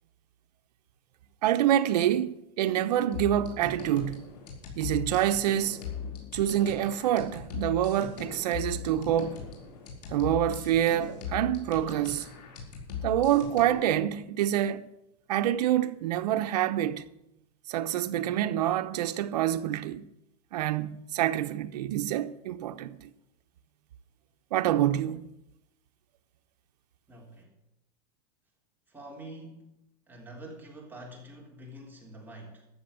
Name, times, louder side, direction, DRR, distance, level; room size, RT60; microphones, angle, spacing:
voice 1, 1.4-4.3 4.8-5.8 6.3-9.4 10.1-12.3 13.0-14.9 15.3-17.0 17.7-20.0 20.5-23.0 24.5-25.3, right 11 dB, 80° right, 1.0 m, -27 dB
sound 1, 3.1-13.9, left 6 dB, 90° left, 4.5 m, -39 dB
voice 2, 27.1-27.5 28.9-29.8 30.1-32.7, right 1 dB, 10° right, 3.5 m, -46 dB
13.5 x 7.0 x 8.8 m
supercardioid pair, 145°, 21 cm